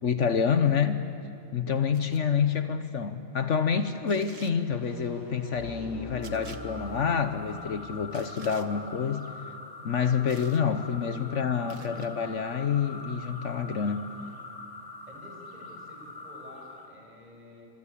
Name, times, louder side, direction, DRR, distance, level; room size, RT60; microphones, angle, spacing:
voice 1, 0.0-1.0 1.5-9.3 9.8-14.0, left 7 dB, 60° left, 10 dB, 1.3 m, -27 dB
sound 1, 1.9-2.2 4.1-4.6 6.2-6.6 8.1-8.7 10.3-10.6 11.7-12.1, right 6 dB, 70° right, 1.6 m, -50 dB
sound 2, 4.6-7.4, left 1 dB, 35° left, 5.1 m, -43 dB
sound 3, 6.1-17.0, left 3 dB, 15° left, 2.1 m, -44 dB
voice 2, 11.1-12.0 15.1-17.7, equal, 30° right, -1 dB, 6.8 m, -50 dB
27.5 x 25.0 x 8.5 m, 2.6 s
omnidirectional pair, 1.4 m